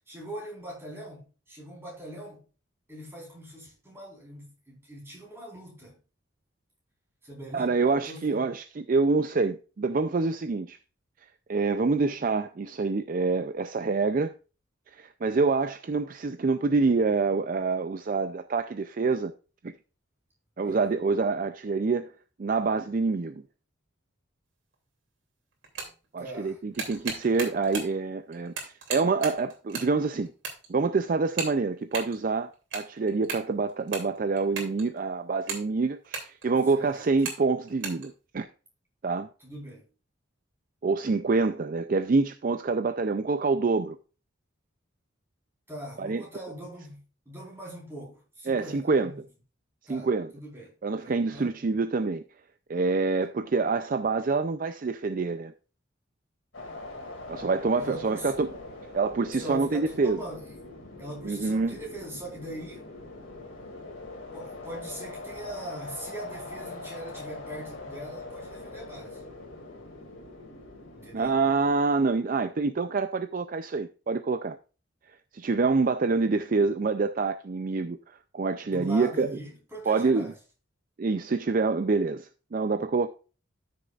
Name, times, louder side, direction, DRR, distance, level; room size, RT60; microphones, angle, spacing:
voice 1, 0.1-2.4 2.9-6.0 7.2-7.7 8.1-8.5 20.6-20.8 26.2-26.6 36.7-37.1 39.4-39.9 45.7-49.2 49.9-51.5 57.8-58.4 59.3-60.6 61.0-62.8 64.3-69.2 70.9-71.4 78.6-80.3, right 1 dB, 15° right, 4.1 m, -41 dB
voice 2, 7.5-10.8 11.5-14.3 14.9-19.3 19.6-19.7 20.6-22.1 22.4-23.4 26.1-30.3 30.7-38.5 39.0-39.3 40.8-44.0 46.0-46.2 48.5-49.1 49.9-50.3 50.8-52.2 52.7-55.5 57.3-58.5 58.9-60.2 61.2-61.8 71.1-74.6 75.3-79.3 79.9-80.3 81.0-83.1, right 4 dB, 45° right, 0.4 m, -26 dB
sound 1, 24.7-24.8 25.5-26.0 26.5-28.0 28.3-29.9 30.2-30.8 31.3-32.2 32.5-35.0 35.3-36.7 37.2-37.4 37.7-38.1, right 5 dB, 70° right, 2.8 m, -36 dB
Stormy Wind sound, 56.5-71.9, left 2 dB, 85° left, 2.4 m, -42 dB
13.0 x 6.6 x 2.4 m
head